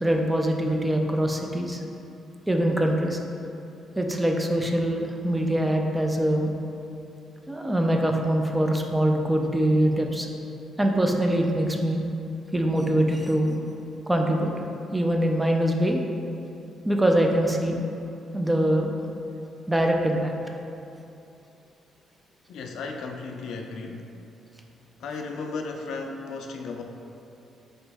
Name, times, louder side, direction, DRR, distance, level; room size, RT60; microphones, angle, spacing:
voice 1, 0.0-1.8 2.5-3.2 4.0-6.5 7.5-10.3 10.8-12.0 12.5-13.6 14.1-14.5 14.9-16.0 16.9-17.8 18.3-18.9 19.7-20.3, right 1 dB, 10° right, 2 dB, 0.4 m, -23 dB
voice 2, 22.5-24.1 25.0-26.8, left 4 dB, 75° left, 3 dB, 0.3 m, -35 dB
4.1 x 3.0 x 3.4 m, 2.7 s
cardioid pair, 90°, 0 cm